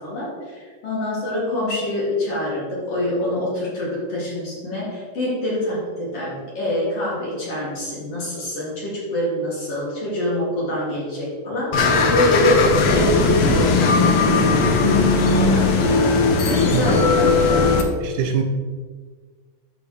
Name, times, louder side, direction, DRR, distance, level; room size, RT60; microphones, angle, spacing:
voice 1, 0.0-14.8 15.4-16.1 16.4-17.8, left 1 dB, 50° left, -6 dB, 3.1 m, -25 dB
sound 1, 11.7-17.8, left 3 dB, 85° left, 1.3 m, -17 dB
voice 2, 18.0-18.4, right 8 dB, 80° right, 4 dB, 2.3 m, -23 dB
11.5 x 5.5 x 3.1 m, 1.5 s
omnidirectional pair, 3.8 m